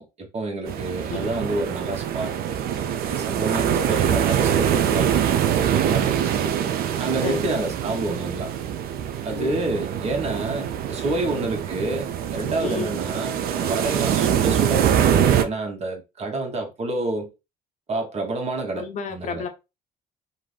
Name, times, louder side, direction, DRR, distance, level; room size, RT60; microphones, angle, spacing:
voice 1, 0.0-2.3 2.7-6.5 7.0-8.5 9.2-17.3 17.9-19.4, right 2 dB, 40° right, 0.9 m, -29 dB
sound 1, 0.7-15.4, right 9 dB, 65° right, 0.4 m, -24 dB
voice 2, 1.1-1.4 7.2-7.6 9.3-9.7 11.1-11.4 12.6-12.9 18.7-19.5, left 5 dB, 45° left, 0.5 m, -32 dB
2.5 x 2.5 x 3.2 m
cardioid pair, 110°, 17 cm